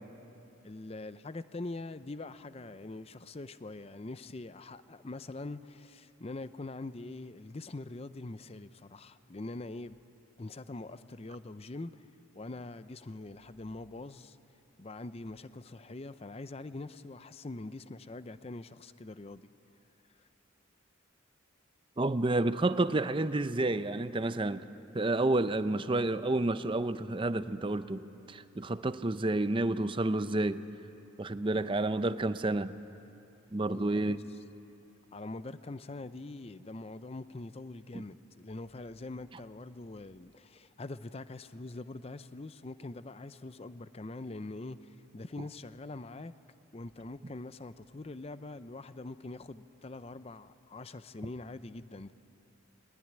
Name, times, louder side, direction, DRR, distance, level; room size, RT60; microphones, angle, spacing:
voice 1, 0.6-10.0 10.4-12.0 12.3-14.4 14.8-19.5 33.7-34.2 35.1-46.3 46.7-52.1, left 2 dB, 30° left, 0.5 m, -43 dB
voice 2, 22.0-24.7 24.9-30.6 31.2-32.7 33.5-34.2, right 2 dB, 25° right, 0.6 m, -30 dB
20.0 x 19.5 x 9.7 m
head